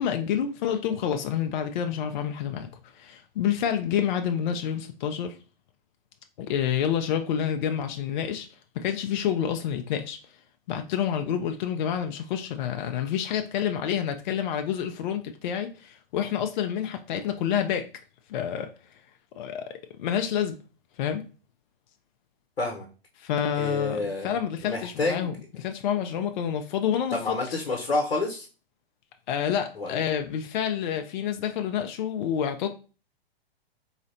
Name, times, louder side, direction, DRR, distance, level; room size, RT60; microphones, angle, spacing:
voice 1, 0.0-2.7 2.9-5.4 6.4-8.5 8.7-10.2 10.7-17.9 18.3-18.7 19.4-20.6 21.0-21.2 23.2-27.4 29.3-32.7, left 9 dB, 50° left, 0.4 m, -28 dB
voice 2, 23.5-24.3 24.6-25.3 27.1-28.5 29.8-30.0, left 3 dB, 85° left, 0.8 m, -28 dB
3.9 x 2.0 x 2.6 m
hypercardioid pair, 125°, 30 cm